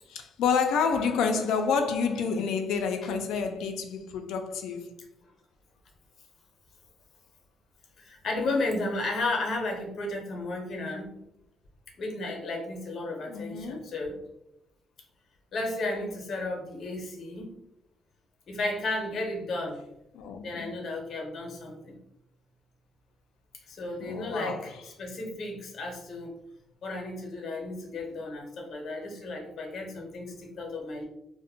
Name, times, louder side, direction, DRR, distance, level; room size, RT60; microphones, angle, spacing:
voice 1, 0.1-4.9 13.3-13.8 20.1-20.7 24.0-24.6, left 5 dB, 90° left, 0.3 m, -28 dB
voice 2, 8.0-11.1 12.0-14.2 15.5-17.5 18.5-19.8 20.4-22.0 23.7-26.3 26.8-31.1, left 2 dB, 60° left, 0.7 m, -33 dB
2.5 x 2.1 x 2.7 m
cardioid pair, 90°, 0 cm